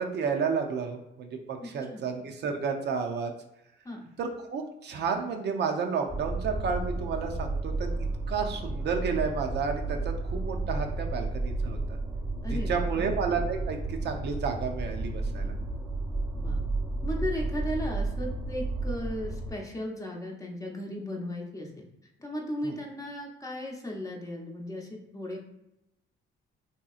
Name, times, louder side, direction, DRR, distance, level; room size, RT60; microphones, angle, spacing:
voice 1, 0.0-3.3 4.2-7.9 8.3-11.8 12.5-15.5 22.6-22.7, right 5 dB, 60° right, 3 dB, 0.5 m, -31 dB
voice 2, 1.6-2.1 3.8-4.1 12.4-13.1 16.4-16.6 17.0-21.9 22.2-25.4, left 1 dB, 15° left, 0 dB, 0.7 m, -36 dB
sound 1, 6.1-19.5, right 2 dB, 10° right, 0.8 m, -32 dB
3.4 x 2.8 x 2.3 m, 0.84 s
cardioid pair, 90°, 20 cm